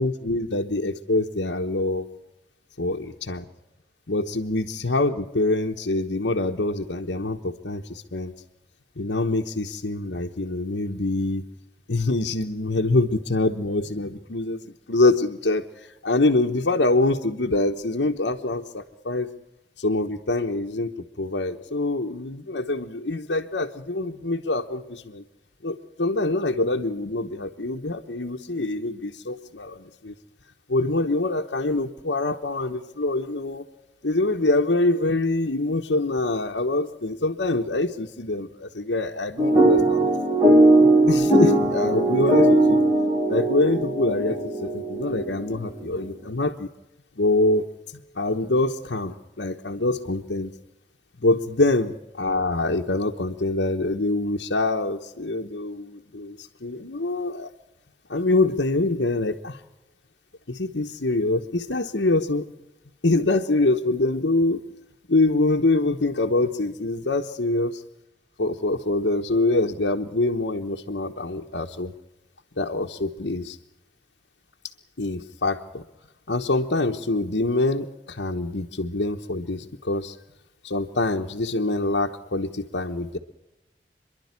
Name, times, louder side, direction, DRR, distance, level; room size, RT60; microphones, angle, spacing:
voice 1, 0.0-2.1 2.8-3.5 4.1-8.3 9.0-11.4 11.9-19.3 19.8-20.9 21.2-25.2 25.6-30.1 30.7-33.6 34.0-40.1 41.1-42.8 43.3-46.7 47.2-47.7 48.1-50.5 51.2-57.5 58.1-59.6 60.5-62.5 63.0-64.6 65.1-67.8 68.4-71.9 72.6-73.6 75.0-75.8 76.3-80.2 80.6-83.2, left 2 dB, 80° left, -1 dB, 1.2 m, -25 dB
sound 1, 39.4-45.6, right 1 dB, 15° right, 3.9 m, -19 dB
29.0 x 11.5 x 9.7 m, 0.98 s
head